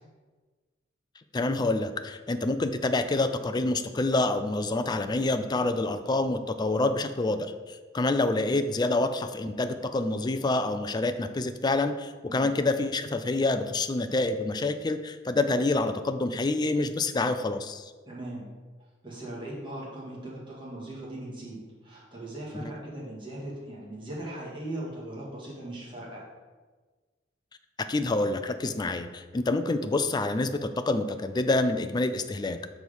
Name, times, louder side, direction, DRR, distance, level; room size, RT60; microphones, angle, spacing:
voice 1, 1.3-17.9 27.9-32.6, left 2 dB, 20° left, 9 dB, 0.4 m, -27 dB
voice 2, 18.1-18.5 19.0-26.2, right 1 dB, 25° right, -6 dB, 2.1 m, -39 dB
6.3 x 4.6 x 5.3 m, 1.3 s
head